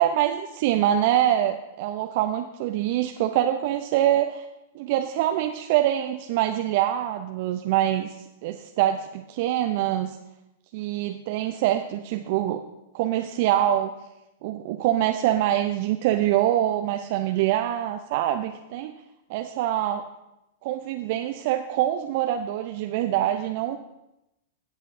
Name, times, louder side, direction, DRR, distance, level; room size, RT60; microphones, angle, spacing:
voice 1, 0.0-4.5 4.7-10.2 10.7-12.6 12.9-13.9 14.4-18.9 19.3-20.0 20.6-23.8, right 12 dB, 50° right, 6 dB, 0.5 m, -24 dB
16.0 x 8.2 x 2.6 m, 0.90 s
figure-of-eight pair, 100°, 0 cm